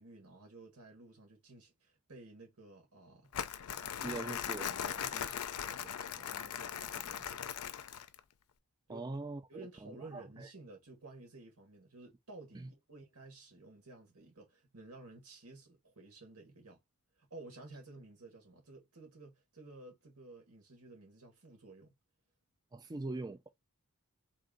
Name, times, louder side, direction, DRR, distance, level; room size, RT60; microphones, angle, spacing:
voice 1, 0.0-3.3 3.7-4.3 4.6-7.5 8.9-9.1 9.5-16.8 17.2-21.9, right 2 dB, 75° right, 2.0 m, -54 dB
Crumpling crinkling, 3.3-8.2, left 9 dB, 75° left, 0.5 m, -39 dB
voice 2, 4.0-4.8 8.9-10.5 12.5-12.7 22.7-23.5, right 2 dB, 20° right, 0.4 m, -42 dB
3.6 x 2.6 x 3.7 m
head